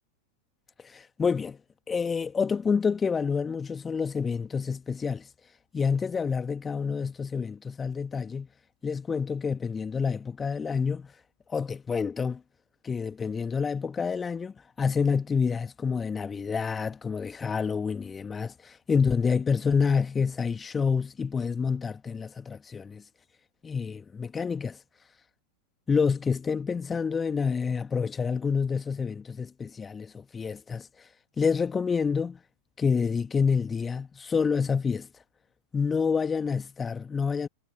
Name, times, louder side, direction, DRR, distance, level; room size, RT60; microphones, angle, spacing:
voice 1, 0.8-1.6 1.9-5.3 5.7-8.5 8.8-11.1 11.5-12.4 12.8-23.0 23.6-24.8 25.9-30.9 31.4-32.4 32.8-35.1 35.7-37.5, left 5 dB, 15° left, 2.1 m, -28 dB
figure-of-eight pair, 90°, 0 cm